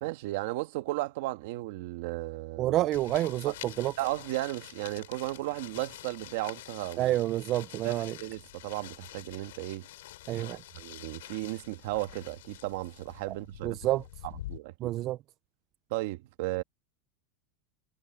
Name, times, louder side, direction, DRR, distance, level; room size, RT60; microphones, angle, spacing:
voice 1, 0.0-2.8 3.4-3.5 4.0-7.1 7.8-9.9 10.5-13.8 14.2-14.9 15.9-16.6, right 19 dB, 65° right, 1.5 m, -35 dB
voice 2, 2.6-3.9 7.0-8.1 10.3-10.6 13.6-14.0 14.8-15.2, right 15 dB, 35° right, 0.5 m, -28 dB
sound 1, 2.9-14.6, left 15 dB, 80° left, 3.9 m, -47 dB
supercardioid pair, 150°, 0 cm